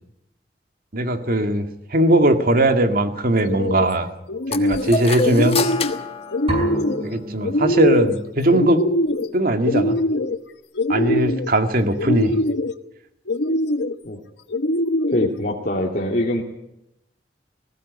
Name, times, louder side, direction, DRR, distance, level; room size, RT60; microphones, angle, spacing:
voice 1, 0.9-4.1 4.5-5.6 7.0-8.8 9.3-9.9 10.9-12.4, right 1 dB, 55° right, 7 dB, 2.0 m, -19 dB
sound 1, 3.4-3.9 4.3-4.9 5.2-6.0 6.3-7.0 7.4-8.2 8.5-9.3 9.6-10.4 10.7-11.5 12.0-12.7 13.3-13.9 14.5-15.3, left 1 dB, 75° left, 1.0 m, -22 dB
sound 2, 4.5-7.2, left 5 dB, 35° left, 1.3 m, -27 dB
sound 3, 6.5-8.3, right 1 dB, 35° right, 5.6 m, -30 dB
voice 2, 15.1-16.4, left 1 dB, 50° left, -2 dB, 2.6 m, -23 dB
20.0 x 16.0 x 9.7 m, 0.84 s
head